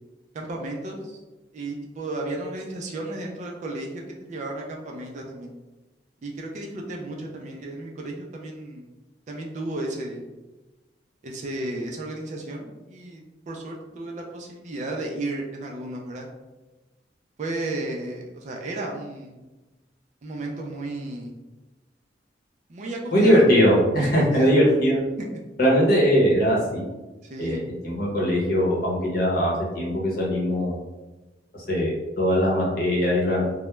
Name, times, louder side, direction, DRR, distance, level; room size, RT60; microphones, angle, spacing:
voice 1, 0.3-1.2 1.5-5.5 6.2-8.9 9.3-10.3 11.2-16.3 17.4-19.4 20.2-21.3 22.7-23.5 24.0-24.5 25.2-25.3 27.3-27.6, right 2 dB, 40° right, 0 dB, 0.3 m, -33 dB
voice 2, 23.1-25.0 25.6-26.8 27.4-27.6 27.8-30.7 31.7-33.4, equal, 55° left, -4 dB, 0.8 m, -20 dB
2.2 x 2.0 x 3.0 m, 1.1 s
head